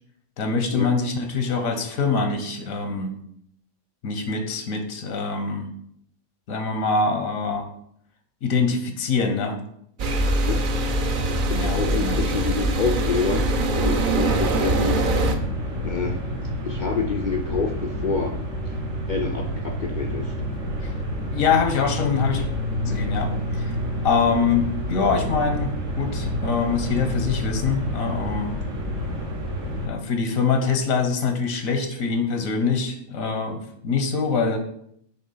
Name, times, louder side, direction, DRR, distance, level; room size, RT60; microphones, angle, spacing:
voice 1, 0.4-3.2 4.0-5.7 6.5-7.7 8.4-9.6 11.5-12.2 20.8-20.9 21.3-22.5 22.9-23.7 24.0-28.6 29.8-34.6, left 5 dB, 85° left, 6 dB, 1.3 m, -24 dB
sound 1, 10.0-15.4, right 1 dB, 50° right, 0.6 m, -22 dB
voice 2, 11.6-15.3 15.8-16.2 16.6-18.4 19.1-20.3, left 4 dB, 65° left, 4 dB, 0.4 m, -27 dB
sound 2, 14.7-29.9, equal, 70° right, 1.6 m, -28 dB
6.5 x 3.1 x 5.4 m, 0.70 s
omnidirectional pair, 1.4 m